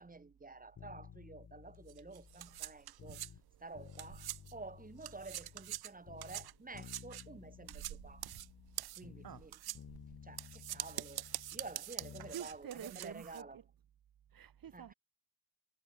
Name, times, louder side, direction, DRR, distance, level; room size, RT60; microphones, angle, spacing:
voice 1, 0.0-3.2 3.6-8.2 8.9-9.6 10.2-13.6 14.7-14.9, right 3 dB, 25° right, 4.8 m, -51 dB
sound 1, 0.8-3.4 3.7-5.8 6.1-9.5 9.7-12.4 12.7-12.8, left 8 dB, 50° left, 1.7 m, -55 dB
sound 2, 1.9-4.7 5.0-13.4, right 14 dB, 85° right, 1.0 m, -45 dB
voice 2, 12.3-13.6 14.3-14.9, right 9 dB, 65° right, 2.6 m, -48 dB
cardioid pair, 95°, 36 cm